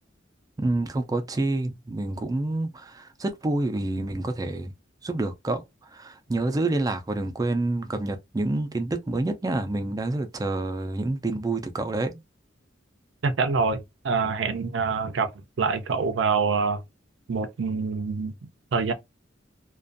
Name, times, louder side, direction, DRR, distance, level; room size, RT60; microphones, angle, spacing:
voice 1, 0.6-4.7 5.0-5.6 5.9-12.2, right 2 dB, 20° right, 0.3 m, -28 dB
voice 2, 13.2-15.3 15.6-16.8 17.3-18.3 18.7-18.9, right 4 dB, 80° right, 0.5 m, -25 dB
2.5 x 2.2 x 2.5 m
head